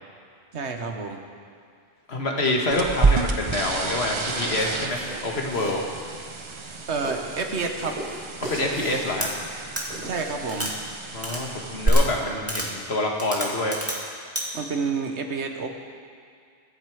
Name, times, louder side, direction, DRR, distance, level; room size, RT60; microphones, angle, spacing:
voice 1, 0.5-1.2 6.9-8.0 9.9-10.7 14.5-15.7, right 4 dB, 90° right, 4 dB, 1.5 m, -29 dB
voice 2, 2.1-5.8 8.4-9.3 11.1-13.8, left 2 dB, 70° left, 1 dB, 1.8 m, -26 dB
sound 1, 2.7-11.9, right 4 dB, 35° right, 0.6 m, -29 dB
sound 2, 4.1-10.7, right 1 dB, 50° right, 4.1 m, -39 dB
sound 3, 9.2-9.3 9.7-9.8 10.5-10.7 11.2-11.4 11.8-12.0 12.5-12.7 13.2-14.0 14.3-14.4, right 1 dB, 15° right, 1.9 m, -30 dB
22.5 x 7.7 x 4.9 m, 2.3 s
omnidirectional pair, 1.1 m